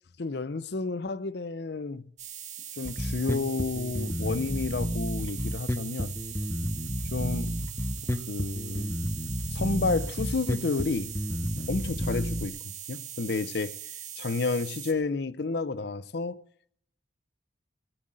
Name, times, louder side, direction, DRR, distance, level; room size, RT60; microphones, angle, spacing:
voice 1, 0.2-2.0 2.8-6.2 7.1-7.6 8.1-9.0 9.5-11.1 11.6-12.6 12.9-13.8 14.2-16.4, left 3 dB, 55° left, 0.6 m, -31 dB
sound 1, 2.2-14.9, right 10 dB, 35° right, 1.7 m, -41 dB
Bass guitar, 2.8-12.4, left 1 dB, 15° left, 0.7 m, -31 dB
19.0 x 7.8 x 7.8 m
head